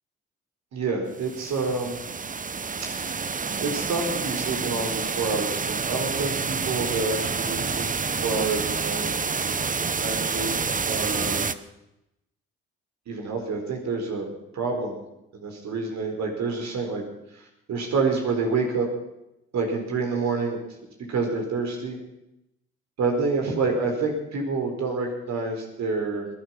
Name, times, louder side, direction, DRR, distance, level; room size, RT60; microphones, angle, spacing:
voice 1, 0.7-2.0 3.6-9.1 10.0-11.5 13.1-14.3 14.5-14.9 15.3-17.0 17.3-18.9 19.5-20.6 21.1-22.0 23.0-26.3, right 4 dB, 60° right, 2 dB, 4.4 m, -28 dB
sound 1, 1.2-11.5, right 5 dB, 25° right, 0.9 m, -28 dB
21.0 x 11.0 x 5.9 m, 0.87 s
hypercardioid pair, 45°, 31 cm